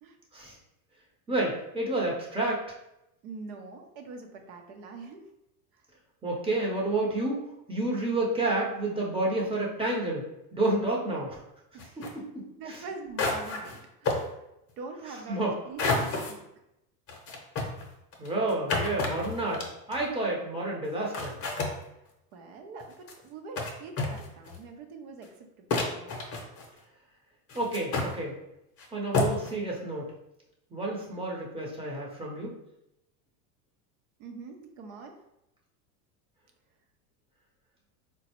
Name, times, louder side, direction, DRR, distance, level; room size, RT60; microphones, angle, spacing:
voice 1, 1.3-2.6 6.2-10.3 10.5-11.4 12.0-12.8 15.3-15.5 18.2-21.4 27.5-28.4 28.9-30.1 30.7-32.5, right 2 dB, 10° right, -3 dB, 0.7 m, -30 dB
voice 2, 3.2-5.3 11.7-12.0 12.6-14.4 14.8-16.4 22.3-26.2 34.2-35.2, right 4 dB, 65° right, 4 dB, 0.8 m, -44 dB
sound 1, 11.8-12.1 12.7-12.8 13.2-13.8 14.0-14.2 15.8-16.3 17.1-20.0 20.8-20.9 21.1-21.7 22.8-23.1 23.6-23.7 24.0-24.6 25.2-25.3 25.7-26.8 27.5-28.1 28.8-28.9 29.1-29.5, left 3 dB, 30° left, 0.7 m, -30 dB
4.0 x 2.2 x 2.9 m, 0.87 s
hypercardioid pair, 100°, 47 cm